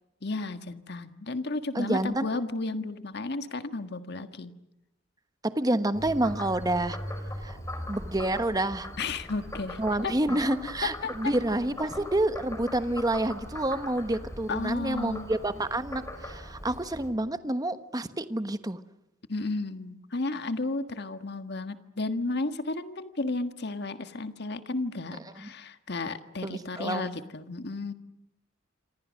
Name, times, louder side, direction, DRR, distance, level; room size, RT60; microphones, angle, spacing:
voice 1, 0.2-4.5 9.0-10.1 14.5-15.3 19.3-27.9, left 3 dB, 60° left, 9 dB, 1.6 m, -33 dB
voice 2, 1.7-2.3 5.4-7.0 7.4-7.6 7.9-8.9 9.8-18.8 25.1-25.5 26.4-27.1, right 1 dB, 20° right, 11 dB, 1.2 m, -28 dB
Frog, 5.9-17.1, left 1 dB, 15° left, 4.5 m, -40 dB
27.5 x 26.0 x 6.4 m, 0.86 s
head